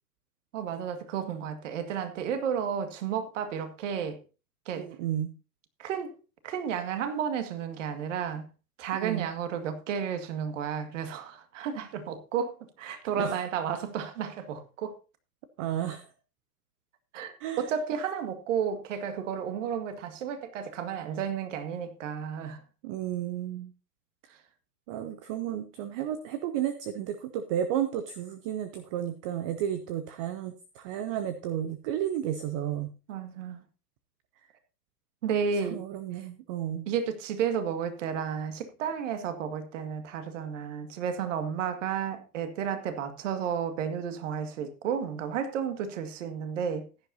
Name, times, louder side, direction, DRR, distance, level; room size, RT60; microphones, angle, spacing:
voice 1, 0.5-4.2 4.7-4.9 5.8-6.2 6.4-8.5 8.8-15.0 17.1-22.6 33.1-33.6 35.2-35.8 36.9-46.9, right 7 dB, 50° right, 2.0 m, -32 dB
voice 2, 4.8-5.3 8.9-9.3 13.2-13.4 15.6-16.1 17.4-17.7 22.8-23.7 24.9-32.9 35.7-36.9, right 10 dB, 20° right, 0.5 m, -32 dB
15.0 x 10.0 x 2.8 m
figure-of-eight pair, 110°, 48 cm